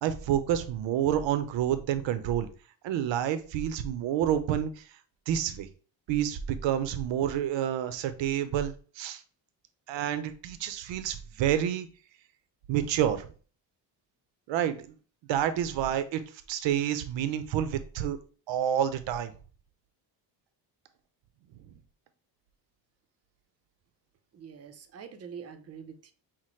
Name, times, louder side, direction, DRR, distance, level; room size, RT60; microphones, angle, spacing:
voice 1, 0.0-2.5 2.8-4.8 5.3-5.7 6.1-9.2 9.9-11.9 12.7-13.3 14.5-14.9 15.3-16.2 16.5-18.2 18.5-19.3, right 10 dB, 75° right, 11 dB, 0.7 m, -28 dB
voice 2, 24.3-26.1, right 7 dB, 35° right, 7 dB, 0.5 m, -45 dB
5.8 x 2.1 x 3.1 m, 0.38 s
cardioid pair, 135°, 45 cm